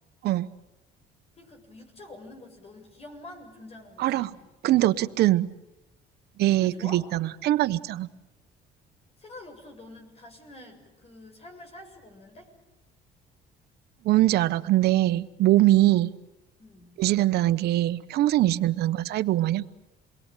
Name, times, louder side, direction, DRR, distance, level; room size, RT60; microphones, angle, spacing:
voice 1, 1.3-4.4 6.6-7.0 9.2-12.5 15.8-16.0 16.6-17.0, left 1 dB, 35° left, 4 dB, 7.5 m, -47 dB
voice 2, 4.0-4.3 4.6-5.5 6.4-8.1 14.0-16.1 17.0-19.6, right 15 dB, 75° right, 12 dB, 1.1 m, -22 dB
28.5 x 22.0 x 9.2 m, 0.96 s
cardioid pair, 110°, 17 cm